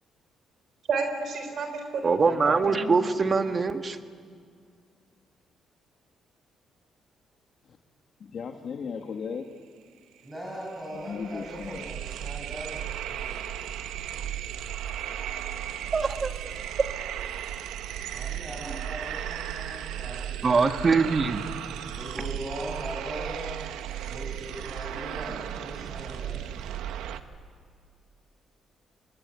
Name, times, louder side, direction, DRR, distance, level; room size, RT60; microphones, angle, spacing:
voice 1, 0.9-2.9, right 4 dB, 65° right, 6 dB, 3.9 m, -31 dB
voice 2, 2.0-4.0 15.9-16.6 20.4-21.4, right 4 dB, 35° right, 8 dB, 1.5 m, -23 dB
voice 3, 8.2-9.5 10.9-11.8, left 6 dB, 55° left, 3 dB, 1.6 m, -36 dB
voice 4, 10.2-13.4 18.1-20.7 22.0-23.7 24.0-26.6, equal, 15° right, -3 dB, 6.4 m, -40 dB
sound 1, 10.2-10.3 10.5-27.2, right 10 dB, 85° right, 1.1 m, -35 dB
24.5 x 21.0 x 9.6 m, 2.1 s
cardioid pair, 90°, 0 cm